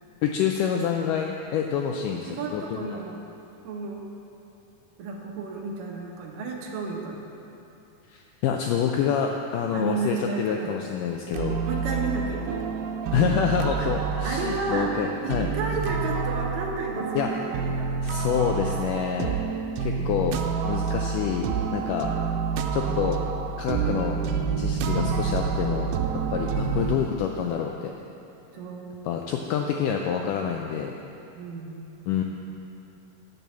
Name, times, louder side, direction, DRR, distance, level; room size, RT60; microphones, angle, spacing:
voice 1, 0.2-3.0 8.1-11.6 13.1-15.5 17.1-17.3 18.0-19.4 19.8-20.4 20.6-22.1 22.7-23.2 23.6-24.2 24.6-25.9 26.3-27.9 29.0-30.9 32.1-32.2, left 8 dB, 85° left, 2 dB, 1.9 m, -27 dB
voice 2, 2.3-3.2 3.6-4.1 5.0-7.2 9.7-10.7 11.7-12.7 13.2-13.5 14.2-17.9 18.6-18.8 20.0-20.3 22.8-23.2 24.9-25.2 26.6-27.2 28.5-29.2 31.4-32.0, right 3 dB, 75° right, 0 dB, 2.4 m, -33 dB
sound 1, 11.3-27.0, right 5 dB, 90° right, 2.6 m, -28 dB
9.4 x 7.5 x 6.9 m, 2.8 s
omnidirectional pair, 4.3 m